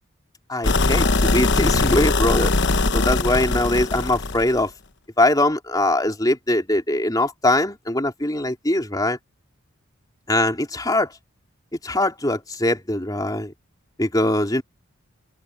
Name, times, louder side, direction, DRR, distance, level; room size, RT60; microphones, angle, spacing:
voice 1, 0.5-2.5 2.9-4.7 5.2-9.2 10.3-11.1 11.8-13.5 14.0-14.6, left 1 dB, 20° left, 3.5 m, -22 dB
sound 1, 0.6-4.6, left 3 dB, 55° left, 1.1 m, -21 dB
open air
head